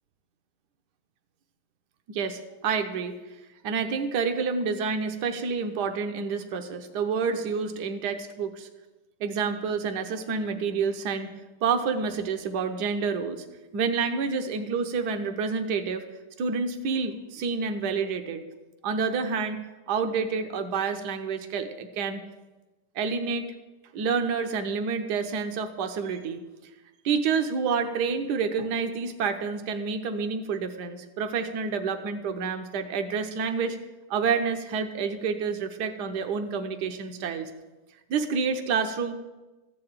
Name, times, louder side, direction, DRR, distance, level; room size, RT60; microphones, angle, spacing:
voice 1, 2.1-3.1 3.6-8.7 9.2-11.3 11.6-13.4 13.7-16.0 16.4-18.4 18.8-19.6 19.9-22.2 22.9-23.5 23.9-26.4 27.0-33.8 34.1-37.5 38.1-39.1, right 5 dB, 75° right, 7 dB, 1.4 m, -28 dB
14.5 x 4.8 x 8.8 m, 1.1 s
omnidirectional pair, 1.8 m